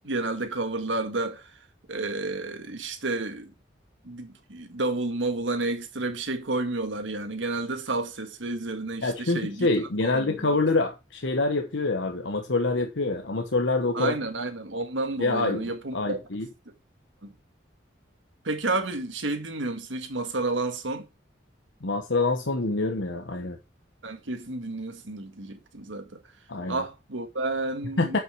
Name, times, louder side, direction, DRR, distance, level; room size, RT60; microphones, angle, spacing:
voice 1, 0.0-1.6 1.9-3.5 4.0-9.7 10.0-10.6 13.9-16.2 17.2-17.3 18.4-21.1 24.0-26.2 26.7-28.2, right 2 dB, 90° right, 1.7 m, -31 dB
voice 2, 9.0-14.1 15.2-15.6 15.9-16.5 21.8-23.6 26.5-26.8 28.0-28.2, left 3 dB, 80° left, 1.1 m, -26 dB
8.1 x 5.7 x 4.6 m
head